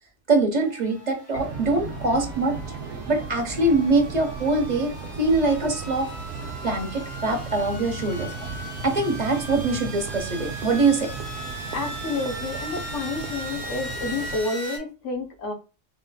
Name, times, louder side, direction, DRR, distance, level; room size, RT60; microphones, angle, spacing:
voice 1, 0.3-2.6 3.1-6.1 6.6-8.3 8.8-11.1, right 2 dB, 40° right, 0.8 m, -23 dB
sound 1, 0.6-14.8, equal, 25° left, 1.0 m, -39 dB
sound 2, 1.3-14.4, right 4 dB, 75° right, 0.9 m, -36 dB
voice 2, 11.7-15.5, left 3 dB, 70° left, 1.2 m, -30 dB
4.1 x 2.4 x 2.2 m
omnidirectional pair, 1.3 m